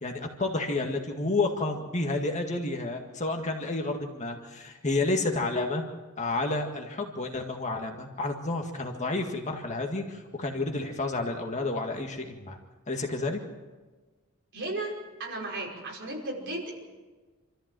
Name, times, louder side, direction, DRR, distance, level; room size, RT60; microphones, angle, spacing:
voice 1, 0.0-5.8 6.2-12.6 12.9-13.4, left 2 dB, 35° left, 3 dB, 1.9 m, -30 dB
voice 2, 14.5-16.7, right 2 dB, 55° right, -1 dB, 5.4 m, -35 dB
26.5 x 14.0 x 7.7 m, 1.3 s
head